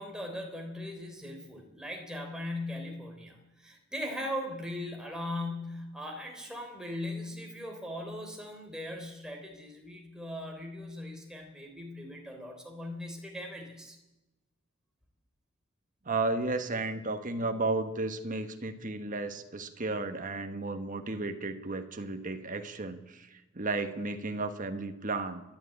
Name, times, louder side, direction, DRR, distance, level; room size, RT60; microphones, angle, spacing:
voice 1, 0.0-14.0, left 1 dB, 5° right, 1 dB, 3.5 m, -39 dB
voice 2, 16.0-25.4, right 3 dB, 40° right, 7 dB, 1.4 m, -33 dB
29.5 x 11.5 x 8.7 m, 1.0 s
head